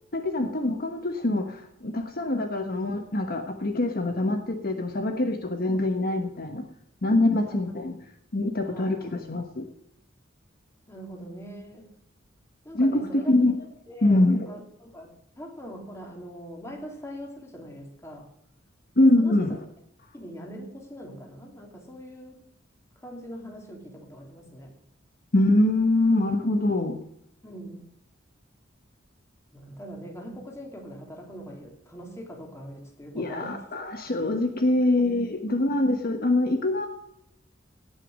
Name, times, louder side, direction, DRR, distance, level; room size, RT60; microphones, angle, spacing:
voice 1, 0.1-6.6 7.0-7.9 8.3-9.7 12.7-13.6 14.0-14.5 19.0-19.6 25.3-27.0 33.1-36.9, left 2 dB, 50° left, 6 dB, 1.2 m, -24 dB
voice 2, 7.4-7.9 8.6-9.2 10.9-11.9 12.6-13.3 13.9-18.3 19.0-19.5 20.1-22.4 23.0-24.7 27.4-27.9 29.5-33.6 35.0-35.2, equal, 15° left, 1 dB, 3.0 m, -42 dB
18.0 x 6.3 x 6.4 m, 0.74 s
head